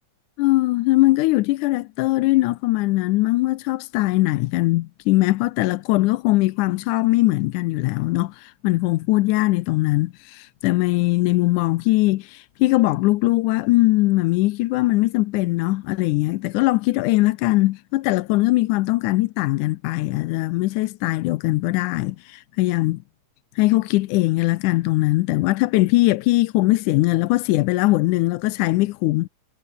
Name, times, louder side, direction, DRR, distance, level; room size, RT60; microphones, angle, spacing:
voice 1, 0.4-23.0 23.6-29.3, left 19 dB, 90° left, 2.1 m, -20 dB
omnidirectional pair, 3.4 m